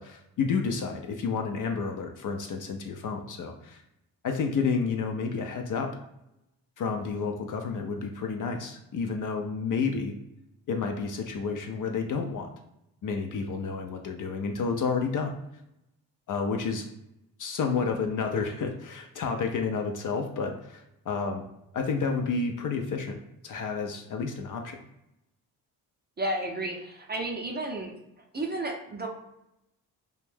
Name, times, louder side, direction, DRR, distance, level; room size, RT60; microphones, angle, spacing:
voice 1, 0.0-3.8 4.2-5.9 6.8-10.2 10.7-12.5 13.0-15.3 16.3-16.9 17.4-21.5 21.7-24.8, left 5 dB, 45° left, 3 dB, 0.5 m, -30 dB
voice 2, 26.2-27.9 28.3-29.1, right 2 dB, 20° right, 1 dB, 0.6 m, -32 dB
2.5 x 2.2 x 3.3 m, 0.86 s
hypercardioid pair, 45°, 47 cm